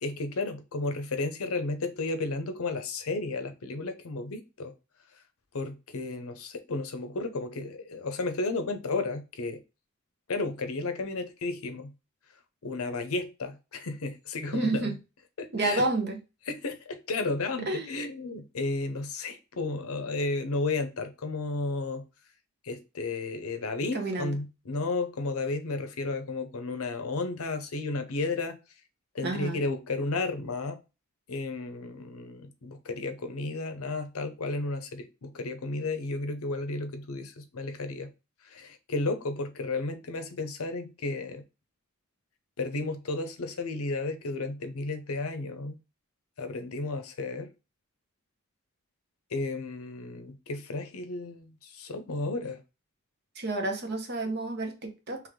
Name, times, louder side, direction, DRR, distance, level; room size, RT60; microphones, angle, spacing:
voice 1, 0.0-4.7 5.5-9.6 10.3-11.9 12.6-14.9 15.4-15.8 16.5-22.0 22.6-28.6 29.1-30.8 31.3-38.1 38.5-41.4 42.6-45.8 46.4-47.5 49.3-52.6, left 3 dB, 80° left, 0.7 m, -33 dB
voice 2, 14.5-14.9 15.5-16.2 17.7-17.9 23.9-24.4 29.2-29.6 53.4-55.2, right 2 dB, 50° right, 0.9 m, -30 dB
3.4 x 3.0 x 3.6 m
head